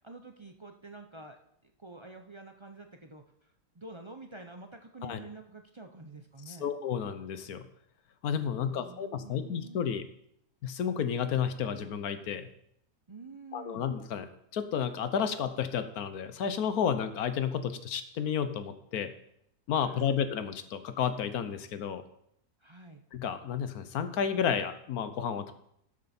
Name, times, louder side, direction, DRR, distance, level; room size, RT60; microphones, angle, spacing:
voice 1, 0.0-3.2 3.7-6.7 8.5-9.8 13.1-13.9 19.8-20.2 22.6-23.0, right 2 dB, 40° right, 4 dB, 0.4 m, -48 dB
voice 2, 6.5-7.7 8.2-10.1 10.6-12.5 13.5-14.3 14.5-19.1 19.7-22.0 23.1-25.5, left 7 dB, 70° left, 10 dB, 1.3 m, -31 dB
13.0 x 7.3 x 4.3 m, 0.72 s
omnidirectional pair, 1.7 m